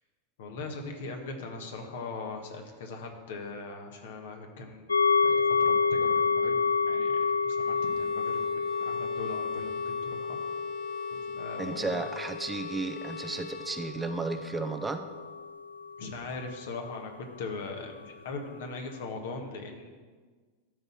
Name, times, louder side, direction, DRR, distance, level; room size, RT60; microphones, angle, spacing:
voice 1, 0.4-4.9 5.2-6.6 6.9-10.4 11.1-12.0 16.0-19.9, left 3 dB, 65° left, 3 dB, 1.4 m, -40 dB
sound 1, 4.9-16.6 16.9-17.0, left 5 dB, 85° left, 0.3 m, -29 dB
Bowed string instrument, 7.6-14.4, left 10 dB, 40° left, 0.6 m, -51 dB
voice 2, 11.6-15.0, right 3 dB, 15° right, 8 dB, 0.6 m, -33 dB
12.0 x 4.1 x 7.2 m, 1.5 s
figure-of-eight pair, 90°, 0 cm